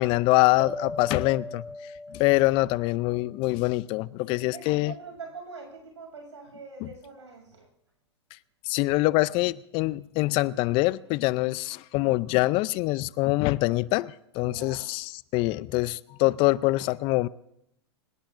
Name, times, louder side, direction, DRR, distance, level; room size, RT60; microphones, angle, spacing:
voice 1, 0.0-4.9 6.8-6.9 8.7-17.3, left 20 dB, 40° left, 0.5 m, -25 dB
sound 1, 0.6-3.6, left 1 dB, ahead, 1.4 m, -40 dB
voice 2, 4.3-7.7 14.4-14.9, right 4 dB, 90° right, 6.7 m, -44 dB
25.0 x 18.0 x 2.6 m
hypercardioid pair, 115°, 14 cm